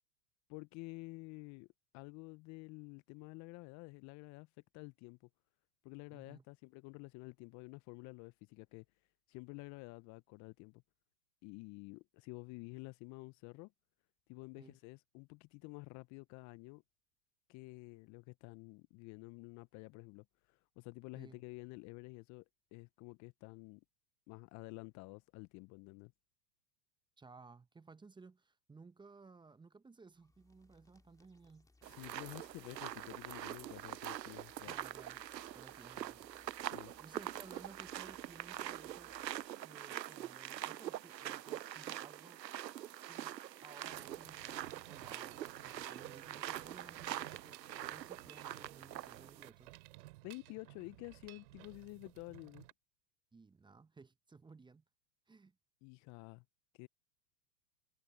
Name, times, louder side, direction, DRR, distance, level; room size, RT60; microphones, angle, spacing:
voice 1, 0.5-1.7 1.9-5.2 5.8-8.8 9.3-10.8 11.4-13.7 14.3-16.8 17.5-22.4 22.7-23.8 24.3-26.1 31.8-34.8 36.7-36.9 50.2-52.7 55.8-56.4 56.7-56.9, left 26 dB, 35° left, 0.7 m, -50 dB
voice 2, 6.1-6.4 14.6-14.8 21.2-21.4 27.2-31.7 34.7-35.2 35.5-36.7 37.0-39.1 39.6-42.7 43.1-49.7 53.3-54.8 55.3-55.6, right 4 dB, 10° right, 1.0 m, -58 dB
sound 1, 30.1-39.5, left 2 dB, 5° left, 2.4 m, -69 dB
sound 2, 31.8-49.5, right 12 dB, 85° right, 0.7 m, -44 dB
Mechanisms, 43.9-52.7, right 19 dB, 60° right, 3.3 m, -57 dB
hypercardioid pair, 100°, 49 cm